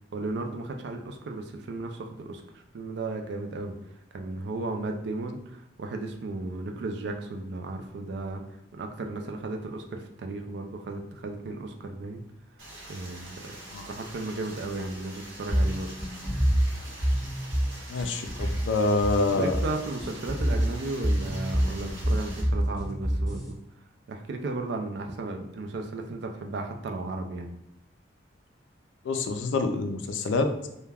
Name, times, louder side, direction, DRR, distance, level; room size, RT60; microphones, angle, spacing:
voice 1, 0.1-3.7 4.1-8.4 8.7-12.2 12.9-13.6 13.9-15.9 19.4-23.6 24.1-27.5, right 2 dB, 60° right, 4 dB, 0.3 m, -35 dB
Stream, 12.6-22.4, right 1 dB, 75° right, 0.9 m, -44 dB
sound 1, 15.5-23.5, equal, 15° right, 1.1 m, -27 dB
voice 2, 17.9-19.6 29.0-30.7, left 3 dB, 70° left, 6 dB, 0.3 m, -26 dB
3.3 x 2.1 x 2.3 m, 0.85 s
head